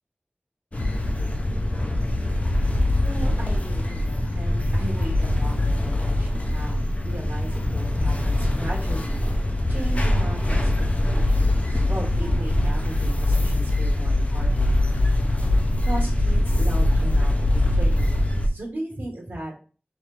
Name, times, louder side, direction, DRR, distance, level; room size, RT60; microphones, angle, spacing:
sound 1, 0.7-18.5, left 1 dB, 40° left, 0.6 m, -22 dB
voice 1, 3.0-9.4 9.7-10.7 11.0-15.1 15.8-19.5, right 1 dB, 80° right, -4 dB, 1.5 m, -37 dB
4.0 x 3.2 x 3.2 m, 0.37 s
wide cardioid pair, 50°, 4 cm